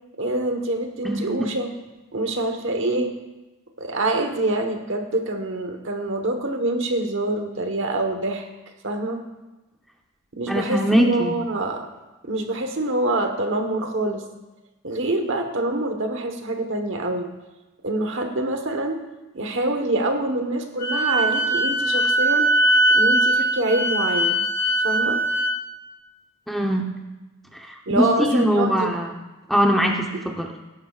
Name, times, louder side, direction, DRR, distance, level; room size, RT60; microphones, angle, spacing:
voice 1, 0.2-1.7 2.1-3.1 3.8-8.5 8.8-9.2 10.3-11.9 12.2-14.2 14.8-17.3 17.8-19.0 19.3-22.6 22.9-24.5 24.8-25.2 27.9-28.9, right 2 dB, 60° right, 5 dB, 1.2 m, -25 dB
voice 2, 1.0-1.5 10.5-11.4 26.5-26.9 27.6-29.1 29.5-30.5, equal, ahead, 1 dB, 0.8 m, -22 dB
Wind instrument woodwind instrument, 20.8-25.5, right 1 dB, 35° left, 3.2 m, -20 dB
17.0 x 11.0 x 2.4 m, 1.1 s
head